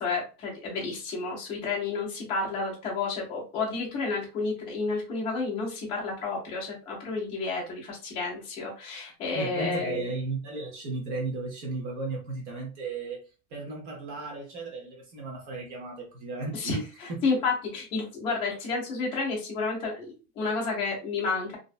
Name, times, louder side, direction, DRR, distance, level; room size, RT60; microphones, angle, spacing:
voice 1, 0.0-10.1 16.5-21.6, left 4 dB, 15° left, 0.3 m, -31 dB
voice 2, 9.3-13.2 13.5-16.8 17.1-17.2, right 3 dB, 55° right, 0.9 m, -35 dB
2.6 x 2.1 x 2.3 m
supercardioid pair, 175°, 41 cm